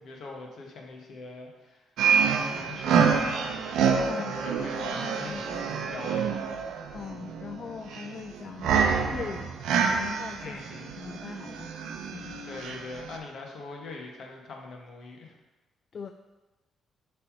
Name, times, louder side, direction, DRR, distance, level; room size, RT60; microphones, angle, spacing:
voice 1, 0.0-1.8 2.1-3.8 4.2-6.4 10.4-10.9 12.4-15.3, left 3 dB, 65° left, 0 dB, 1.3 m, -42 dB
sound 1, 2.0-13.2, right 6 dB, 80° right, 0.6 m, -27 dB
voice 2, 4.1-4.5 4.9-5.4 6.9-8.8 9.1-9.5 9.8-10.6 11.0-11.7 12.1-12.5 15.9-16.1, left 6 dB, 50° left, 6 dB, 0.4 m, -40 dB
6.7 x 3.4 x 4.7 m, 1.1 s
cardioid pair, 90°, 0 cm